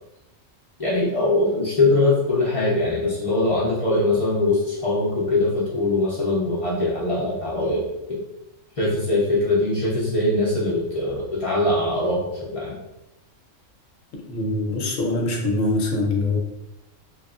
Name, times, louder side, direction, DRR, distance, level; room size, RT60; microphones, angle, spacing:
voice 1, 0.8-8.2 8.8-12.8, left 2 dB, 45° left, -6 dB, 0.4 m, -22 dB
voice 2, 14.3-16.4, left 2 dB, 75° left, 1 dB, 1.0 m, -23 dB
3.0 x 2.3 x 2.4 m, 0.91 s
omnidirectional pair, 1.4 m